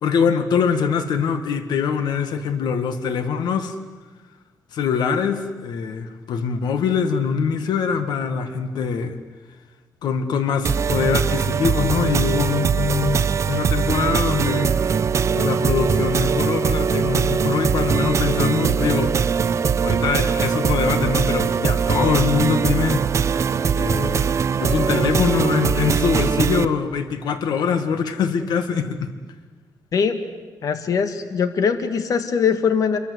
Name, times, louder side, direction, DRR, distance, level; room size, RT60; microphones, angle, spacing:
voice 1, 0.0-3.8 4.7-9.2 10.0-14.7 15.3-19.2 19.8-23.0 23.7-24.3 24.6-29.1, left 6 dB, 85° left, 9 dB, 1.9 m, -23 dB
sound 1, 10.6-26.6, right 6 dB, 45° right, 0.9 m, -21 dB
voice 2, 30.6-33.0, left 6 dB, 55° left, 9 dB, 1.8 m, -21 dB
26.5 x 23.5 x 8.2 m, 1.3 s
cardioid pair, 130°, 7 cm